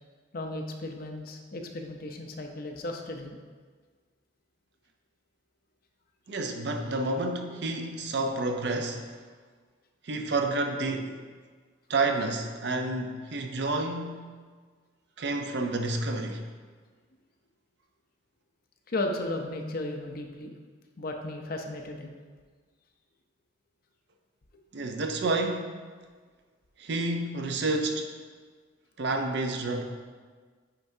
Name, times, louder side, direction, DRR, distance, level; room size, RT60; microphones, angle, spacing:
voice 1, 0.3-3.4 18.9-20.5 21.0-22.1, left 2 dB, 50° left, 4 dB, 0.6 m, -35 dB
voice 2, 6.3-9.0 10.0-11.2 11.9-14.3 15.2-16.5 24.7-25.7 26.8-28.1 29.0-29.8, right 2 dB, 60° right, 4 dB, 0.6 m, -29 dB
8.6 x 4.5 x 2.7 m, 1.5 s
head